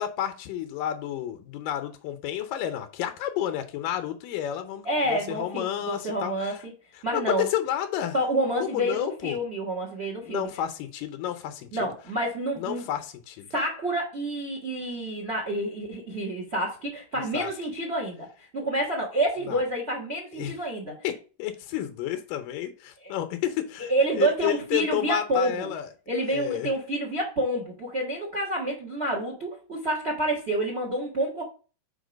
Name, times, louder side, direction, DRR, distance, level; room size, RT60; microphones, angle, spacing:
voice 1, 0.0-6.6 6.9-8.1 8.6-9.4 10.2-11.7 12.6-13.5 17.3-17.5 19.5-19.6 20.4-20.5 21.0-23.9 24.2-25.9 26.3-26.7, left 11 dB, 80° left, 2.5 m, -31 dB
voice 2, 4.8-6.5 7.0-7.4 8.1-10.5 11.7-12.8 13.5-21.0 23.0-23.1 23.9-25.7 26.1-31.4, right 1 dB, 65° right, 0.6 m, -28 dB
5.7 x 4.5 x 5.2 m
omnidirectional pair, 3.9 m